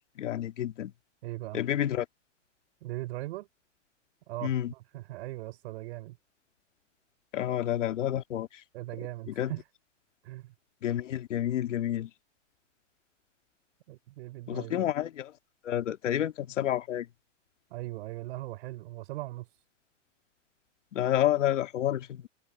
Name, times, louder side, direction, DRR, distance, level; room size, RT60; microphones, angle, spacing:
voice 1, 0.2-0.9 1.5-2.1 4.4-4.7 7.3-8.5 9.4-9.5 10.8-12.1 14.5-15.3 15.6-17.1 20.9-22.3, left 11 dB, 75° left, 2.4 m, -29 dB
voice 2, 1.2-1.6 2.8-3.5 4.3-6.2 8.7-9.6 10.2-10.5 13.9-14.9 17.7-19.5, right 18 dB, 55° right, 4.0 m, -39 dB
hypercardioid pair, 135°, 37 cm